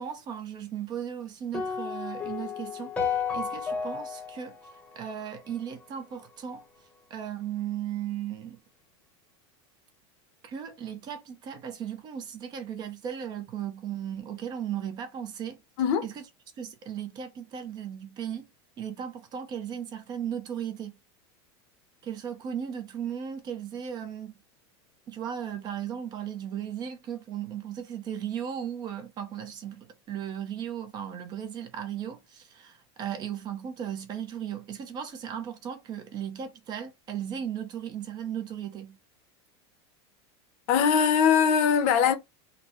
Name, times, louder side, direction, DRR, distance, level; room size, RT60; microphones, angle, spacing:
voice 1, 0.0-6.6 7.1-8.6 10.4-15.6 16.0-16.2 16.6-18.5 18.8-20.9 22.0-24.4 25.1-39.0, right 9 dB, 30° right, 0.7 m, -36 dB
sound 1, 1.5-5.8, left 6 dB, 10° left, 0.9 m, -33 dB
voice 2, 40.7-42.2, left 7 dB, 50° left, 0.7 m, -21 dB
3.9 x 2.2 x 2.9 m
supercardioid pair, 160°, 14 cm